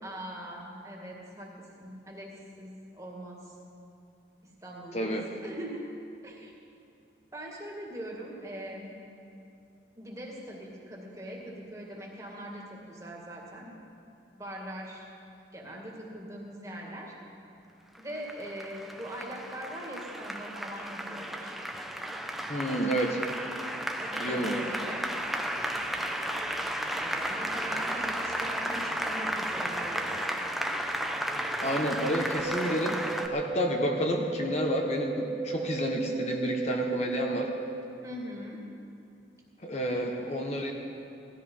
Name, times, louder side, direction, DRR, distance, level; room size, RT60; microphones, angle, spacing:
voice 1, 0.0-3.6 4.4-5.9 6.2-6.5 7.3-8.9 10.0-13.7 14.3-15.0 15.5-17.1 18.0-21.5 24.0-25.1 26.9-30.1 38.0-38.6, equal, 15° right, -2 dB, 2.2 m, -41 dB
voice 2, 4.9-5.3 22.5-23.2 24.2-24.6 31.6-33.0 33.3-37.5 39.6-40.7, equal, 35° left, 2 dB, 1.2 m, -30 dB
Applause, 17.9-33.3, equal, ahead, 0.7 m, -33 dB
sound 1, 32.4-37.4, right 4 dB, 85° right, 1.8 m, -35 dB
18.0 x 13.5 x 5.6 m, 2.7 s
head